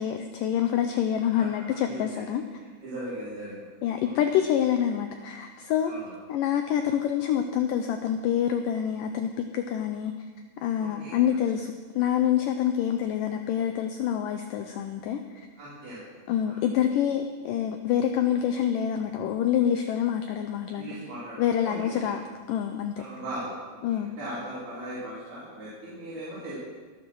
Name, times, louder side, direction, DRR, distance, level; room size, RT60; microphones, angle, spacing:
voice 1, 0.0-2.4 3.8-5.9 6.3-10.1 10.6-15.5 16.3-20.9 21.4-22.2 22.5-23.0 23.8-24.1, left 9 dB, 80° left, 7 dB, 2.0 m, -26 dB
voice 2, 2.8-3.7 4.0-4.2 5.8-6.1 10.8-11.4 15.6-16.0 16.4-16.6 20.8-22.2 23.0-23.5 23.9-26.6, right 1 dB, 75° right, -10 dB, 5.8 m, -38 dB
19.5 x 7.5 x 6.3 m, 1.4 s
omnidirectional pair, 4.5 m